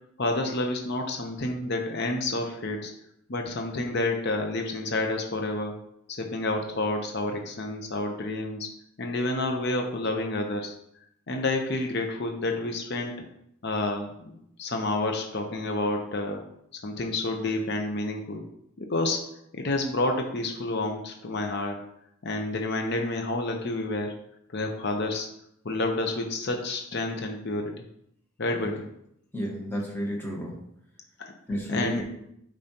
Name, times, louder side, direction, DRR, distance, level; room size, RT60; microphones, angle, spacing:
voice 1, 0.2-2.9 3.3-5.7 6.2-8.7 9.0-10.7 11.3-13.2 13.6-14.3 14.6-16.4 16.8-18.4 18.8-19.2 19.5-21.8 22.2-24.1 24.5-25.3 25.6-27.8 28.4-28.8 31.7-32.0, left 2 dB, 55° left, 3 dB, 0.8 m, -29 dB
voice 2, 29.3-30.6 31.5-32.0, equal, 10° left, -1 dB, 1.4 m, -31 dB
8.6 x 5.1 x 2.9 m, 0.75 s
head